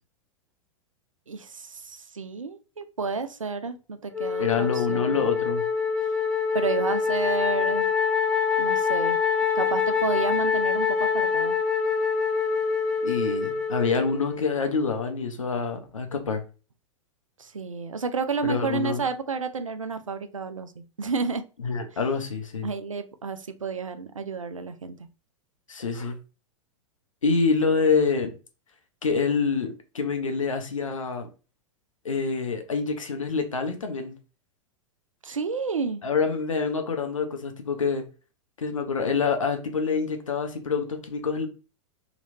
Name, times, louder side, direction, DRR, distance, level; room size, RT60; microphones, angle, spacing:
voice 1, 1.3-5.2 6.5-7.9 8.6-9.2 9.6-11.6 17.4-21.4 22.6-25.0 35.2-36.0, right 5 dB, 85° right, 0.4 m, -31 dB
Wind instrument woodwind instrument, 4.1-14.5, left 6 dB, 5° left, 0.8 m, -25 dB
voice 2, 4.4-5.6 13.0-16.4 18.4-19.0 21.6-22.7 25.7-26.2 27.2-28.3 29.0-31.3 32.0-34.1 36.0-38.0 38.6-41.5, left 5 dB, 80° left, 0.7 m, -26 dB
3.0 x 2.9 x 2.6 m
figure-of-eight pair, 95°, 17 cm